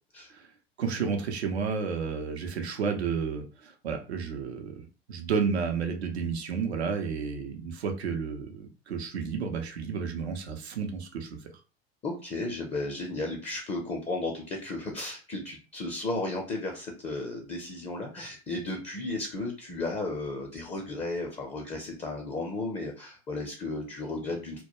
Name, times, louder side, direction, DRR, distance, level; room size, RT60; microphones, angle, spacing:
voice 1, 0.8-11.3, right 5 dB, 85° right, 4 dB, 0.6 m, -31 dB
voice 2, 12.0-24.6, left 2 dB, 20° left, 1 dB, 0.5 m, -34 dB
2.2 x 2.2 x 2.9 m, 0.34 s
hypercardioid pair, 85°, 32 cm